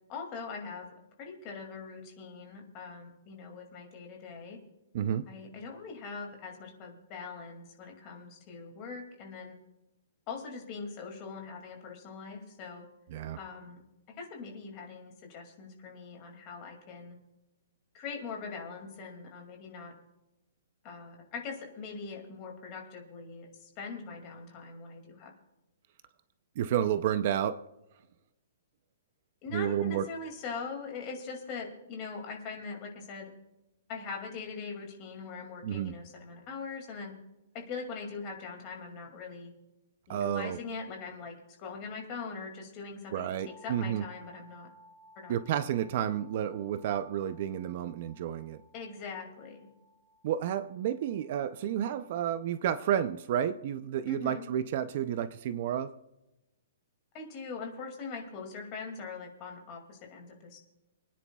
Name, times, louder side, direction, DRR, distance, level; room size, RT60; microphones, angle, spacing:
voice 1, 0.1-0.9 1.2-4.6 5.3-9.6 10.3-12.9 13.4-13.8 14.1-17.2 17.9-19.9 20.8-25.3 29.4-33.3 33.9-37.1 37.5-39.5 40.1-44.7 45.2-45.7 48.7-49.7 54.1-54.5 57.1-60.6, left 4 dB, 25° left, 2 dB, 2.3 m, -42 dB
voice 2, 4.9-5.3 13.1-13.4 26.6-27.6 29.5-30.1 35.6-35.9 40.1-40.6 43.1-44.0 45.3-48.6 50.2-55.9, right 10 dB, 35° right, 12 dB, 0.5 m, -31 dB
sound 1, 43.4-53.2, equal, 70° right, 1.6 m, -60 dB
28.5 x 10.0 x 2.3 m, 0.97 s
hypercardioid pair, 175°, 0 cm